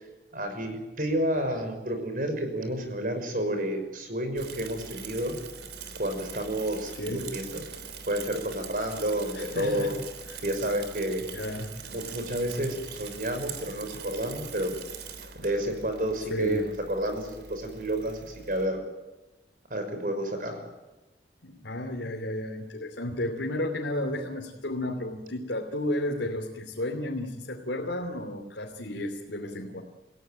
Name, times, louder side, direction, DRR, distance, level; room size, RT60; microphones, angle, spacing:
voice 1, 0.3-5.4 6.0-7.6 8.1-9.9 10.4-11.2 11.9-14.7 15.4-18.8 19.7-20.6, right 1 dB, 50° right, 7 dB, 5.8 m, -30 dB
Bicycle / Mechanisms, 4.4-18.7, right 6 dB, 70° right, 3.3 m, -42 dB
voice 2, 7.0-7.3 9.3-9.9 10.3-10.4 11.3-11.7 16.3-16.6 21.4-29.8, left 1 dB, 85° left, 1 dB, 3.0 m, -33 dB
29.0 x 16.5 x 9.2 m, 1.1 s
head